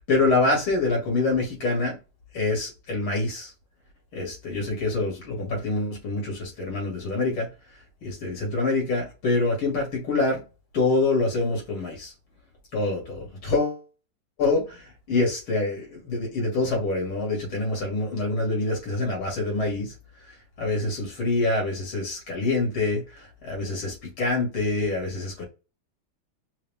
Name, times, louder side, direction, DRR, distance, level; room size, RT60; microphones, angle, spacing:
voice 1, 0.1-2.0 2.3-3.5 4.1-7.5 8.0-10.4 10.7-12.1 12.7-13.8 14.4-19.9 20.6-25.4, left 3 dB, 75° left, 3.1 m, -26 dB
5.5 x 2.1 x 3.4 m
omnidirectional pair, 2.3 m